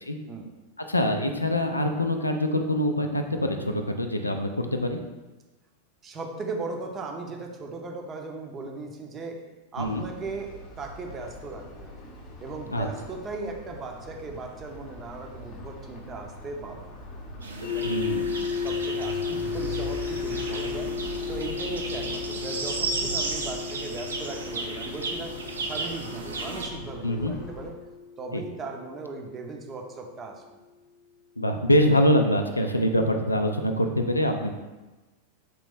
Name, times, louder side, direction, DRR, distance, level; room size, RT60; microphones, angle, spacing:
voice 1, 0.9-5.0 9.8-10.0 12.7-12.9 17.8-18.4 27.0-27.3 28.3-28.4 31.4-34.5, left 1 dB, 85° left, 5 dB, 0.3 m, -24 dB
voice 2, 6.0-9.4 9.7-12.0 12.4-17.1 17.6-18.0 18.6-20.9 21.3-25.3 25.6-27.8 28.2-30.4, right 3 dB, 25° right, 2 dB, 0.6 m, -37 dB
sound 1, 9.8-27.7, left 1 dB, 35° left, 0.7 m, -41 dB
sound 2, 17.4-26.7, right 3 dB, 70° right, 0.5 m, -34 dB
sound 3, 17.6-29.5, left 6 dB, 90° right, 1.4 m, -34 dB
4.0 x 2.9 x 3.4 m, 1.2 s
figure-of-eight pair, 90°, 0 cm